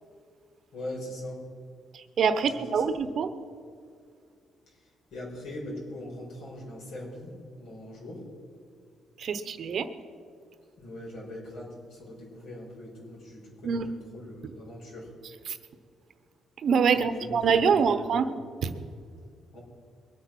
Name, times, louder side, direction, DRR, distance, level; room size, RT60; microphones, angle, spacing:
voice 1, 0.7-1.4 2.4-2.9 4.7-8.3 10.8-15.1 17.2-18.3 19.5-19.6, left 1 dB, 80° left, -3 dB, 5.0 m, -41 dB
voice 2, 1.9-3.3 9.2-9.9 13.6-13.9 15.5-15.6 16.6-18.3 18.6-18.8, right 6 dB, 55° right, 11 dB, 0.9 m, -25 dB
22.5 x 8.3 x 6.0 m, 2.2 s
cardioid pair, 115°, 0 cm